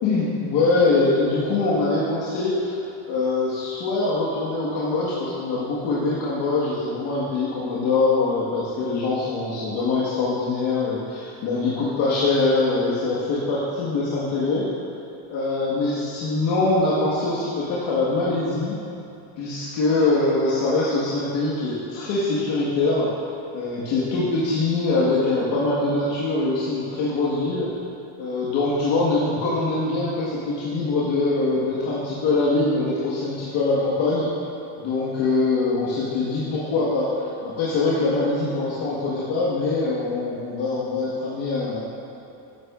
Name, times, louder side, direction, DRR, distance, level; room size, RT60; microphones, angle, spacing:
voice 1, 0.0-2.8 3.1-14.7 15.3-18.7 19.4-23.1 23.5-27.7 28.2-34.3 34.8-41.8, left 3 dB, 65° left, -8 dB, 1.7 m, -23 dB
11.0 x 8.5 x 2.5 m, 2.9 s
cardioid pair, 140°, 47 cm